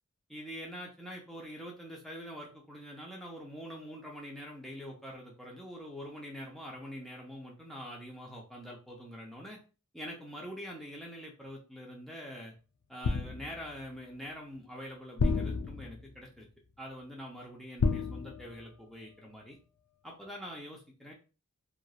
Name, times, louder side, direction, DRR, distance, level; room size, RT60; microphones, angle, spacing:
voice 1, 0.3-9.6 9.9-12.5 12.9-16.5 16.8-19.6 20.0-21.1, equal, ahead, -3 dB, 0.7 m, -45 dB
sound 1, 13.0-13.8 15.2-16.2 17.8-18.9 19.2-19.4, left 4 dB, 70° left, 0.4 m, -32 dB
3.0 x 2.5 x 2.4 m, 0.33 s
head